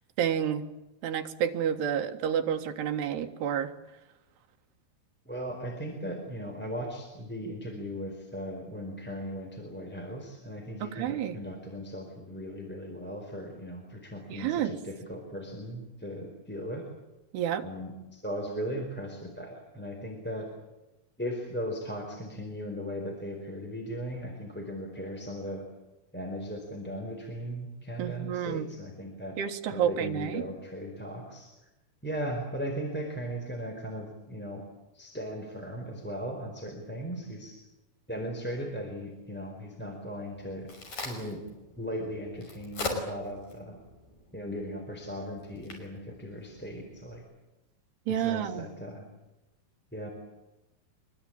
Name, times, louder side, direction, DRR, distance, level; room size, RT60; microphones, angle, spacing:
voice 1, 0.2-0.6 1.0-3.7 10.8-11.4 14.3-14.8 17.3-17.7 28.0-28.7 29.4-30.5 48.1-48.7, right 9 dB, 85° right, 6 dB, 3.6 m, -29 dB
voice 2, 5.3-16.9 17.6-20.5 21.2-25.6 26.1-29.4 29.7-31.5 32.0-34.6 34.9-37.6 38.1-40.7 41.0-41.4 41.8-43.8 44.3-47.3 48.2-49.0 49.9-50.1, equal, 5° left, 2 dB, 4.0 m, -37 dB
Crack, 40.3-47.2, left 2 dB, 45° left, 6.9 m, -42 dB
25.0 x 22.5 x 8.9 m, 0.99 s
omnidirectional pair, 4.6 m